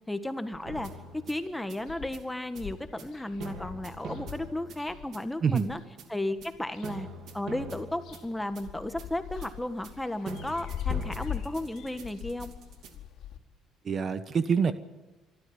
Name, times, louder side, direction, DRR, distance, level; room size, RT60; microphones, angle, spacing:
voice 1, 0.1-5.8 6.1-7.1 7.3-12.5, left 1 dB, 5° left, 9 dB, 1.6 m, -34 dB
sound 1, 0.5-1.1 1.5-1.6 1.8-5.8 6.4-7.2 7.5-13.4, left 9 dB, 70° left, 2.6 m, -41 dB
sound 2, 0.7-12.9, right 2 dB, 65° right, 2.8 m, -44 dB
voice 2, 13.8-14.7, right 6 dB, 40° right, 12 dB, 1.0 m, -26 dB
25.0 x 13.5 x 9.7 m, 1.1 s
cardioid pair, 115°, 0 cm